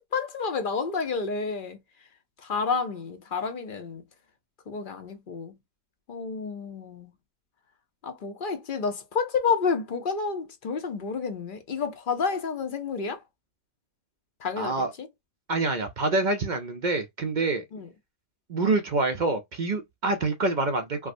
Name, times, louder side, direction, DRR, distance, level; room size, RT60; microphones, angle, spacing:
voice 1, 0.1-1.8 2.4-4.0 4.7-5.5 6.1-7.1 8.0-13.2 14.4-15.1 17.7-17.9, left 5 dB, 50° left, 0.6 m, -30 dB
voice 2, 14.6-14.9 15.5-17.6 18.5-21.1, right 3 dB, 55° right, 0.5 m, -26 dB
4.7 x 2.0 x 2.5 m
omnidirectional pair, 1.4 m